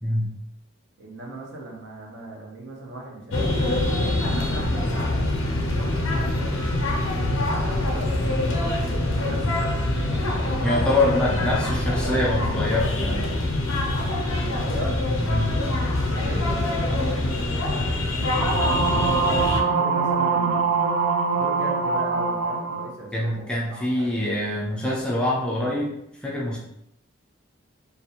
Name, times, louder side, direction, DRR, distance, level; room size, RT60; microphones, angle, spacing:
voice 1, 0.0-0.4 10.6-13.2 15.2-15.6 23.1-26.0 26.2-26.6, left 1 dB, 5° left, -5 dB, 0.3 m, -25 dB
voice 2, 1.0-5.3 5.6-6.5 7.0-8.8 9.1-10.7 11.2-11.4 14.3-15.0 16.1-20.8 21.3-24.5, right 1 dB, 60° right, -2 dB, 0.7 m, -39 dB
sound 1, 3.3-19.6, left 1 dB, 80° left, 0.5 m, -24 dB
sound 2, 18.4-22.9, right 4 dB, 85° right, 0.3 m, -23 dB
2.4 x 2.1 x 2.8 m, 0.78 s
head